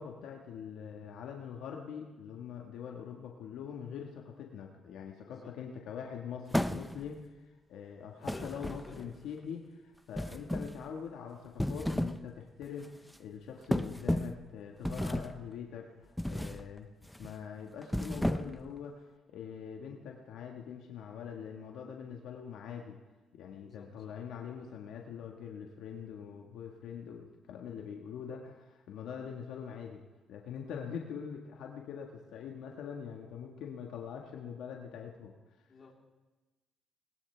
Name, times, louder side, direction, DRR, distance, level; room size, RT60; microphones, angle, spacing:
voice 1, 0.0-16.9 17.2-23.0 23.3-30.0 30.3-35.3, left 7 dB, 85° left, 1 dB, 1.5 m, -43 dB
sound 1, 6.5-7.2 8.3-9.2 10.1-10.8 11.4-12.3 12.6-12.9 13.7-14.4 14.8-15.4 16.2-16.6 17.0-17.3 17.8-18.7, left 1 dB, 5° left, 0.6 m, -33 dB
voice 2, 8.2-8.8 23.6-23.9 35.7-35.9, left 4 dB, 40° left, -2 dB, 3.5 m, -51 dB
20.0 x 19.0 x 3.4 m, 1.2 s
cardioid pair, 90°, 0 cm